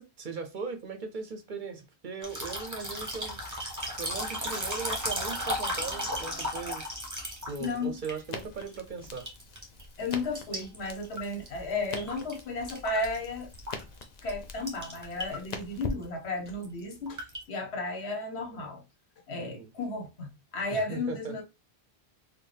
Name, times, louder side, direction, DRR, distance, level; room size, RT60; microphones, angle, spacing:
voice 1, 0.0-3.4 4.0-7.1 7.5-9.3 19.4-19.7 20.7-21.3, right 5 dB, 55° right, 0.7 m, -39 dB
sound 1, 2.2-8.8 9.1-9.8 10.1-12.4 12.7-14.0 14.3-14.4 14.7-15.6 15.8-16.0 16.5-17.4, equal, 20° right, 0.9 m, -35 dB
voice 2, 7.6-8.0 10.0-13.5 14.2-18.8 19.3-21.4, left 2 dB, 80° left, 1.2 m, -34 dB
Crackle, 8.3-16.6, left 4 dB, 50° left, 0.6 m, -43 dB
4.4 x 2.3 x 3.3 m
omnidirectional pair, 1.1 m